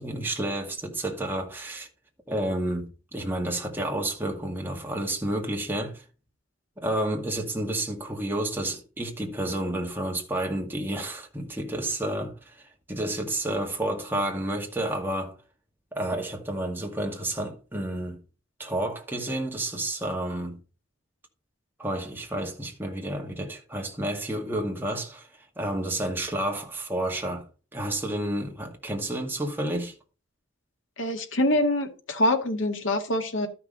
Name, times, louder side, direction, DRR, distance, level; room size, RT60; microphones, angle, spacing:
voice 1, 0.0-1.9 2.3-6.0 6.8-15.4 15.9-18.2 18.6-20.6 21.8-25.3 25.6-27.5 27.7-29.9, right 1 dB, 10° right, 2.0 m, -30 dB
voice 2, 31.0-33.5, left 1 dB, 85° left, 2.1 m, -25 dB
12.5 x 5.9 x 4.0 m
head